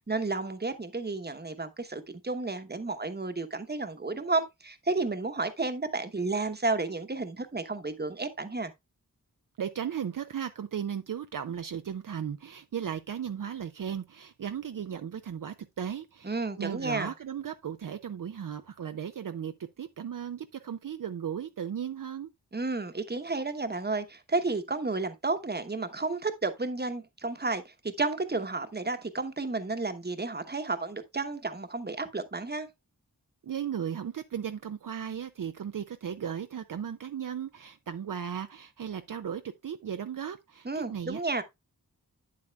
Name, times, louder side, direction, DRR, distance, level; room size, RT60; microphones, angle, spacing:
voice 1, 0.1-8.7 16.2-17.1 22.5-32.7 40.6-41.4, right 3 dB, 30° right, 1.0 m, -32 dB
voice 2, 9.6-22.3 33.4-41.2, right 8 dB, 65° right, 0.5 m, -36 dB
8.5 x 7.7 x 2.3 m
wide cardioid pair, 75°, 35 cm